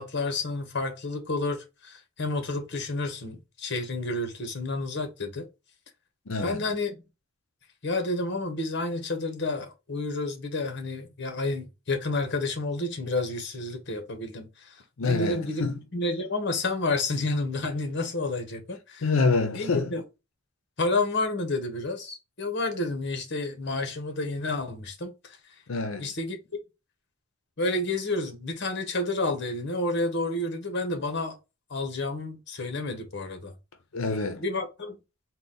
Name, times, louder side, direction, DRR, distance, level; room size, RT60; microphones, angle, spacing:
voice 1, 0.0-5.5 6.4-7.0 7.8-15.6 15.9-19.1 19.5-20.0 20.8-25.4 26.0-26.4 27.6-31.4 31.7-33.5 34.4-35.0, left 2 dB, 55° left, 1.0 m, -30 dB
voice 2, 6.3-6.6 15.0-15.8 19.0-19.9 25.7-26.1 33.9-34.4, left 4 dB, 80° left, 0.7 m, -26 dB
3.9 x 2.2 x 3.9 m
head